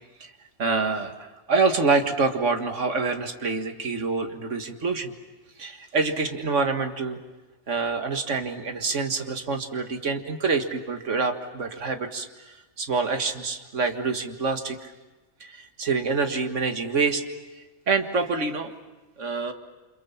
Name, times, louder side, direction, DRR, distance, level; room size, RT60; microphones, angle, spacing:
voice 1, 0.6-5.1 5.6-7.2 7.7-14.9 15.4-17.2 17.9-18.7 19.2-19.5, right 4 dB, 85° right, 6 dB, 2.1 m, -26 dB
28.5 x 27.0 x 7.2 m, 1.1 s
omnidirectional pair, 1.2 m